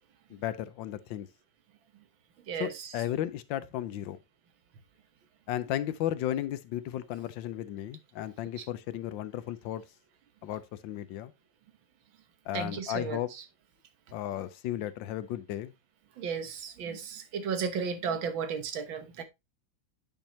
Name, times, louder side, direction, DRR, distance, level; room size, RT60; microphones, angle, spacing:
voice 1, 0.3-1.3 2.6-4.2 5.5-9.8 10.4-11.3 12.5-13.3 14.1-15.7, left 12 dB, 75° left, 1.4 m, -34 dB
voice 2, 2.5-2.9 8.6-8.7 12.5-13.4 16.2-19.2, right 6 dB, 80° right, 1.9 m, -34 dB
9.0 x 5.3 x 2.8 m
omnidirectional pair, 2.1 m